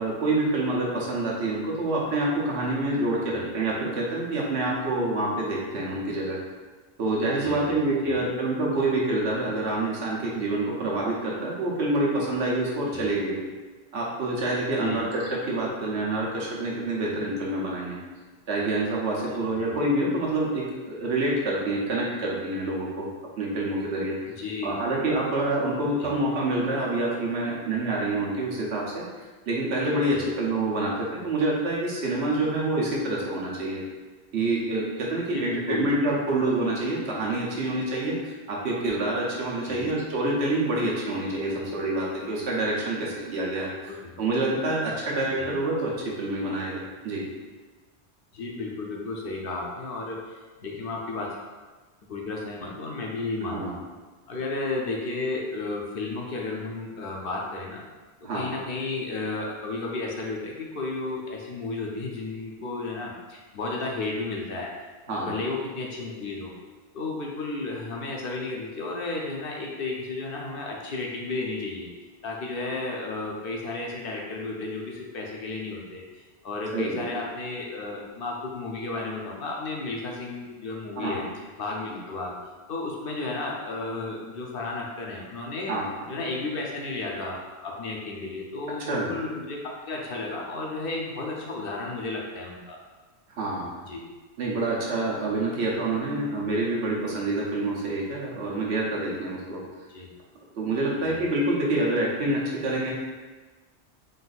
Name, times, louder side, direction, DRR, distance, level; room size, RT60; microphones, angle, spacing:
voice 1, 0.0-6.4 7.0-13.4 13.9-18.0 18.5-23.1 23.4-24.2 24.6-29.0 29.5-33.8 34.3-47.2 53.5-53.7 58.2-58.4 65.1-65.4 76.7-76.9 81.0-81.2 81.8-82.0 85.7-85.8 88.8-89.1 93.4-93.7 94.4-99.6 100.6-102.9, right 2 dB, 80° right, -4 dB, 1.2 m, -27 dB
voice 2, 3.3-3.8 7.4-7.7 8.0-8.2 12.9-13.1 14.8-15.0 19.2-19.8 24.3-25.3 26.0-26.2 30.0-30.3 35.3-36.0 39.7-39.9 41.5-41.7 43.8-44.1 45.4-45.5 48.3-51.4 52.1-53.8 54.3-57.8 58.3-64.7 65.1-66.5 66.9-71.9 72.2-81.3 81.6-82.3 82.7-85.7 86.1-89.6 89.9-92.8 93.9-94.1 99.9-100.1 101.1-101.3, left 3 dB, 60° left, -1 dB, 0.8 m, -33 dB
3.8 x 2.5 x 4.0 m, 1.3 s
omnidirectional pair, 1.1 m